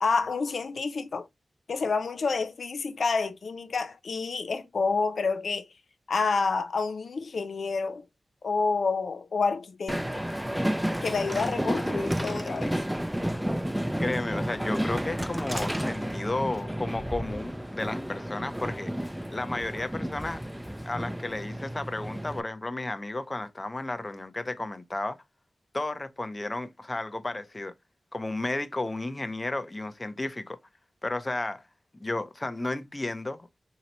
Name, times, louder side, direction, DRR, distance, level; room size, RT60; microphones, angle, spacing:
voice 1, 0.0-1.3 1.7-5.7 6.1-8.0 8.4-10.2 11.0-12.8, left 4 dB, 80° left, 0.5 m, -28 dB
Train, 9.9-22.4, equal, 5° right, 0.4 m, -31 dB
voice 2, 14.0-18.9 19.3-20.4 20.8-25.2 25.7-27.7 28.1-30.6 31.0-31.6 32.0-33.5, left 2 dB, 35° left, 0.7 m, -33 dB
4.0 x 2.9 x 2.9 m
cardioid pair, 40°, 0 cm